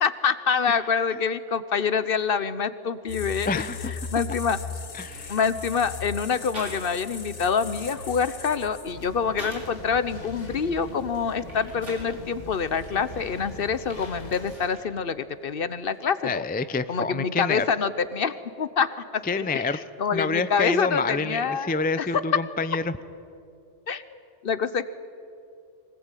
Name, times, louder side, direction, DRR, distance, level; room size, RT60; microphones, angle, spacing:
voice 1, 0.0-3.7 4.1-4.6 5.3-16.4 16.9-22.1 23.9-24.2 24.4-24.9, left 6 dB, 55° left, 14 dB, 1.0 m, -26 dB
sound 1, 3.1-9.1, left 4 dB, 75° left, 1.8 m, -37 dB
voice 2, 3.5-3.9 4.9-5.4 16.2-17.7 19.2-19.8 20.1-22.9, left 4 dB, 15° left, 13 dB, 0.4 m, -27 dB
sound 2, 4.9-5.7 6.5-7.2 7.5-9.8 10.3-12.1 12.7-14.9 15.2-16.0, right 1 dB, 75° right, 5.7 m, -46 dB
sound 3, 8.8-14.5, left 2 dB, 35° left, 1.7 m, -42 dB
24.0 x 19.5 x 9.1 m, 2.6 s
omnidirectional pair, 1.2 m